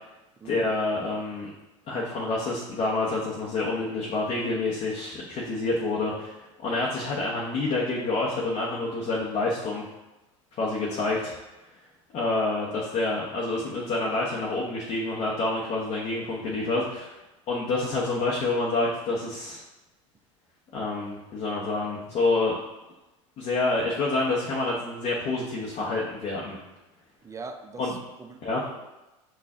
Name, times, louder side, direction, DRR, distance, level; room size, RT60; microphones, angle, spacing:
voice 1, 0.4-1.5 1.9-9.8 10.6-11.3 12.1-17.2 17.5-19.6 20.7-22.6 23.4-26.6 27.8-27.9 28.4-28.6, left 2 dB, 40° left, -5 dB, 1.0 m, -28 dB
voice 2, 27.2-28.4, right 4 dB, 20° right, 6 dB, 0.4 m, -42 dB
5.9 x 2.5 x 3.5 m, 1.0 s
hypercardioid pair, 85°, 17 cm